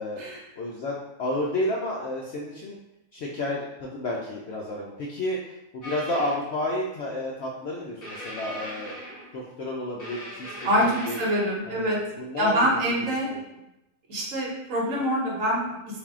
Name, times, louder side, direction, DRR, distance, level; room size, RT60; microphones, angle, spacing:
voice 1, 0.6-2.8 3.1-5.4 5.7-9.0 9.3-11.2 11.7-12.8 13.3-13.4, left 1 dB, 65° left, -4 dB, 0.6 m, -31 dB
sound 1, 5.8-6.4 8.0-9.5 10.0-11.6, right 1 dB, 40° left, 1.5 m, -39 dB
voice 2, 10.6-12.0 12.4-13.3 14.1-15.8, equal, 65° right, -2 dB, 1.1 m, -25 dB
3.5 x 2.6 x 3.5 m, 0.89 s
omnidirectional pair, 1.6 m